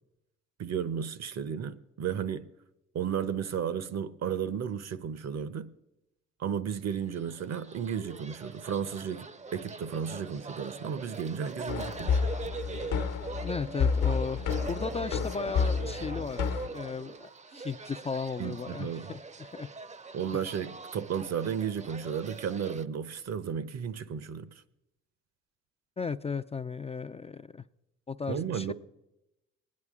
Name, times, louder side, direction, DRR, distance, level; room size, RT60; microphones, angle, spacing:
voice 1, 0.6-2.5 2.9-5.7 6.4-12.2 18.4-19.1 20.1-24.5 28.3-28.7, right 7 dB, 55° right, 0.9 m, -33 dB
sound 1, 7.0-22.8, right 4 dB, 20° right, 0.7 m, -42 dB
sound 2, 11.7-16.7, left 6 dB, 65° left, 1.1 m, -30 dB
voice 2, 13.4-19.7 20.3-20.4 26.0-27.6 28.1-28.7, left 5 dB, 20° left, 0.4 m, -36 dB
21.0 x 9.6 x 3.7 m
supercardioid pair, 60°, 32 cm